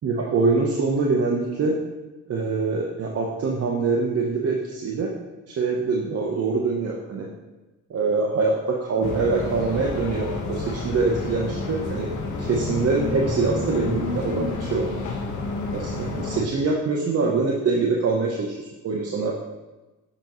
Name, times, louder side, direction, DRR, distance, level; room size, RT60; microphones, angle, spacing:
voice 1, 0.0-1.8 2.3-5.1 5.5-7.3 7.9-12.1 12.4-15.0 15.7-19.4, right 4 dB, 50° right, -1 dB, 0.9 m, -24 dB
sound 1, 9.0-16.4, left 3 dB, 75° left, 1.3 m, -29 dB
7.2 x 5.3 x 3.0 m, 1.1 s
cardioid pair, 90°, 30 cm